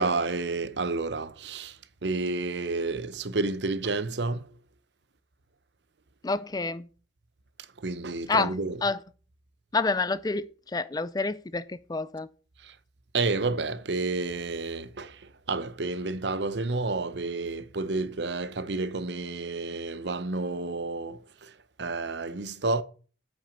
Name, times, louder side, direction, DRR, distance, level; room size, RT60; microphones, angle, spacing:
voice 1, 0.0-1.7 2.0-4.4 7.8-8.8 13.1-15.1 15.5-21.2 21.8-22.8, right 3 dB, 70° right, 0.8 m, -30 dB
voice 2, 6.2-6.9 8.3-9.0 9.7-12.3, left 3 dB, 20° left, 0.4 m, -28 dB
9.3 x 6.1 x 6.9 m
head